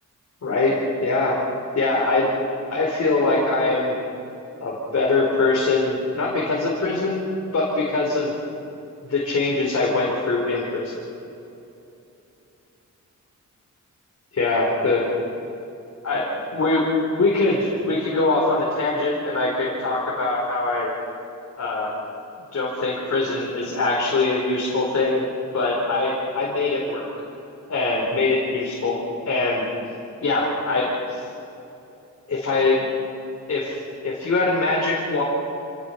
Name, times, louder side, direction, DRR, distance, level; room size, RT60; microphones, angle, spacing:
voice 1, 0.4-1.4 1.7-2.4 2.7-3.9 4.6-7.2 7.5-8.3 9.1-11.0 14.3-15.1 16.0-16.8 17.2-20.9 21.6-21.9 22.5-25.2 25.5-27.1 27.7-29.0 29.2-29.6 30.2-31.2 32.3-32.9 33.5-33.8 34.0-35.2, left 3 dB, 55° left, -4 dB, 4.6 m, -22 dB
27.5 x 19.0 x 6.0 m, 2.8 s
wide cardioid pair, 115°, 30 cm